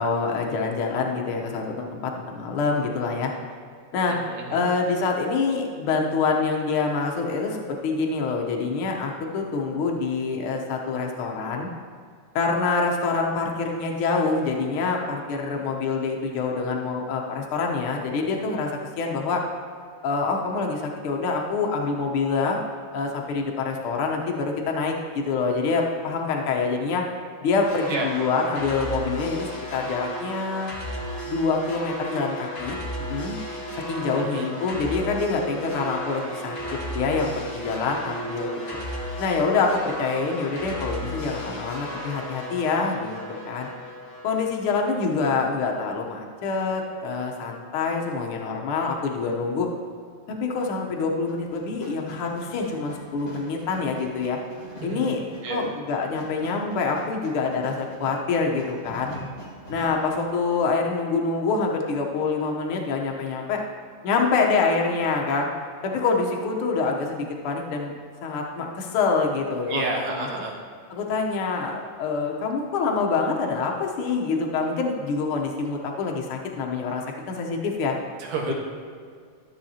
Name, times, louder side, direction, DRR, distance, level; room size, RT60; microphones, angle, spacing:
voice 1, 0.0-3.3 3.9-4.2 4.5-11.7 12.3-18.7 19.0-19.4 20.0-22.6 22.9-27.0 27.4-30.7 31.2-33.4 33.9-36.6 36.9-38.8 39.2-43.7 44.2-49.7 50.3-54.4 54.8-55.2 55.5-59.1 59.7-63.6 64.0-65.5 65.8-67.9 68.2-69.8 70.2-70.3 70.9-77.9, left 4 dB, 85° left, 1 dB, 1.1 m, -26 dB
voice 2, 4.1-4.6 27.9-28.1 34.2-34.5 54.8-55.2 55.4-55.6 69.7-70.6 78.2-78.5, right 3 dB, 80° right, 0 dB, 2.8 m, -30 dB
sound 1, 27.6-44.5, left 1 dB, 45° left, 0.5 m, -35 dB
sound 2, 29.4-40.5, right 6 dB, 55° right, 2.4 m, -41 dB
sound 3, 51.3-60.1, equal, 25° left, 1.7 m, -43 dB
13.5 x 7.6 x 2.8 m, 2.2 s
omnidirectional pair, 3.7 m